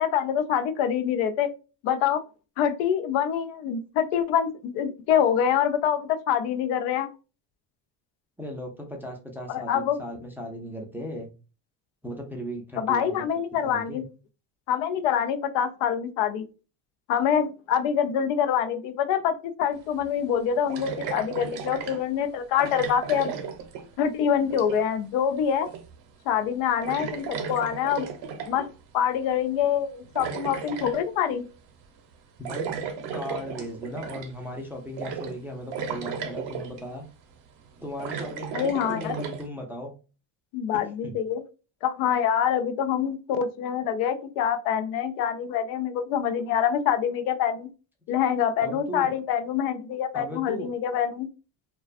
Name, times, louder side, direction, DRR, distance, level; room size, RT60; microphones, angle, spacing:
voice 1, 0.0-1.5 1.8-2.2 2.6-7.1 9.5-10.0 12.8-14.0 14.7-16.4 17.1-23.3 24.0-25.7 26.3-28.1 28.5-28.7 28.9-31.4 38.5-39.2 40.5-41.4 41.8-47.7 48.1-51.3, left 8 dB, 90° left, 9 dB, 0.6 m, -25 dB
voice 2, 8.4-11.3 12.0-13.3 13.6-14.0 32.4-32.7 33.1-37.1 37.8-39.9 40.7-41.2 48.6-49.1 50.1-50.7, equal, 5° right, 1 dB, 0.3 m, -37 dB
sound 1, 19.7-19.8 20.7-22.0 22.6-24.1 24.4-25.0 25.7-26.0 26.3-26.5 26.8-28.7 29.8-31.0 32.5-34.4 35.0-35.4 35.7-36.8 37.6-39.5, right 6 dB, 65° right, 0.7 m, -35 dB
2.4 x 2.3 x 2.3 m, 0.32 s
cardioid pair, 110°, 47 cm